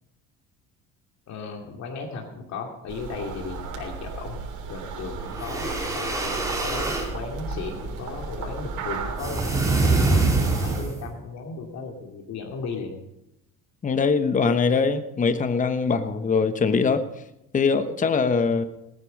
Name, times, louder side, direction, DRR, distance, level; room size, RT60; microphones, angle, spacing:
voice 1, 1.3-4.4 4.7-9.5 9.7-13.0, left 4 dB, 55° left, 1 dB, 2.5 m, -36 dB
sound 1, 2.9-10.8, right 4 dB, 65° right, 3.7 m, -35 dB
sound 2, 5.3-7.1 9.2-11.1, right 3 dB, 10° right, 3.4 m, -24 dB
voice 2, 13.8-17.0 17.5-18.6, left 5 dB, 25° left, 10 dB, 1.0 m, -22 dB
19.0 x 9.7 x 5.2 m, 0.87 s
cardioid pair, 115°, 32 cm